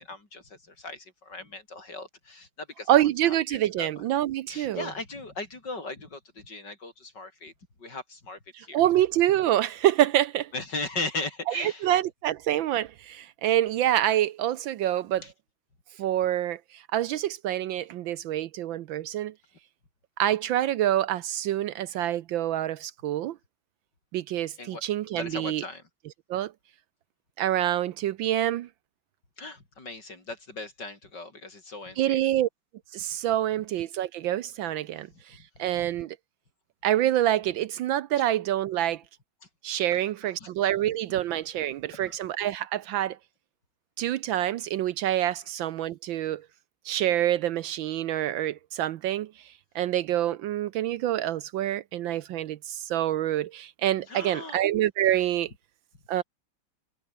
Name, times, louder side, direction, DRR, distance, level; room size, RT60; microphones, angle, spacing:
voice 1, 0.0-3.0 3.2-3.9 4.5-7.5 7.8-8.8 10.5-11.9 15.2-15.3 24.6-24.8 25.2-25.8 29.4-32.2 38.2-38.3 40.2-40.5 41.9-42.2 54.1-54.6, left 3 dB, 55° left, 5.9 m, -38 dB
voice 2, 2.9-4.9 8.5-10.5 11.5-15.2 16.0-19.3 20.2-23.4 24.1-25.6 26.3-26.5 27.4-28.7 32.0-32.5 32.9-36.2 36.8-39.0 39.6-43.2 44.0-46.4 46.8-49.3 49.7-55.5 56.1-56.2, right 12 dB, 70° right, 1.4 m, -26 dB
omnidirectional pair, 2.3 m